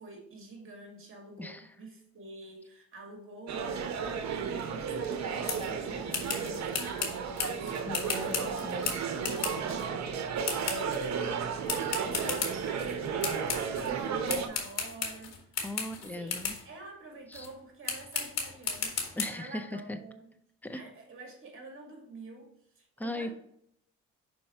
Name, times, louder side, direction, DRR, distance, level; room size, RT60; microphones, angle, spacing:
voice 1, 0.0-8.7 9.1-10.1 10.5-15.7 16.2-20.3 20.7-22.5 22.7-23.3, right 2 dB, 45° right, 1 dB, 2.1 m, -48 dB
voice 2, 1.4-1.7 7.9-8.9 15.6-16.6 17.3-17.5 19.2-20.0 20.6-20.8 23.0-23.3, left 1 dB, 5° left, 8 dB, 0.6 m, -38 dB
sound 1, 3.5-14.5, right 6 dB, 65° right, 0.9 m, -33 dB
sound 2, 5.5-5.7 6.1-9.9 10.4-11.1 11.7-12.9 13.2-13.9 14.3-16.7 17.3-17.5 17.9-19.3, left 6 dB, 60° left, 1.5 m, -35 dB
5.4 x 4.5 x 4.3 m, 0.70 s
cardioid pair, 90°, 30 cm